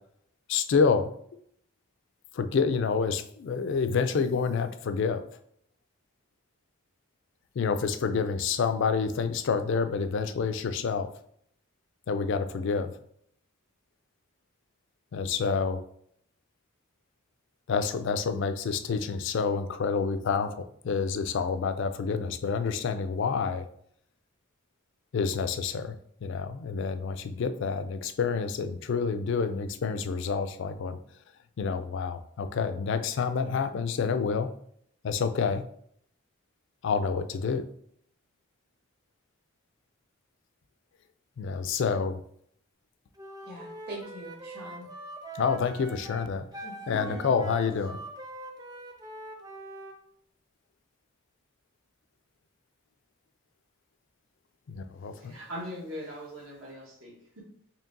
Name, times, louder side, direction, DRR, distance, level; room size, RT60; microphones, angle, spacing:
voice 1, 0.5-1.1 2.4-5.2 7.6-11.1 12.1-12.9 15.1-15.8 17.7-23.6 25.1-31.0 31.6-34.5 35.0-35.6 36.8-37.6 41.4-42.1 45.4-46.5 46.9-48.0 54.7-55.3, left 5 dB, 55° left, 10 dB, 0.3 m, -28 dB
Wind instrument woodwind instrument, 43.2-50.0, right 2 dB, 20° right, 0.3 m, -43 dB
voice 2, 43.5-44.9 46.6-47.3, right 1 dB, 50° right, -1 dB, 1.3 m, -42 dB
voice 3, 55.1-57.4, equal, 70° right, -3 dB, 1.3 m, -41 dB
4.5 x 3.1 x 2.6 m, 0.67 s
head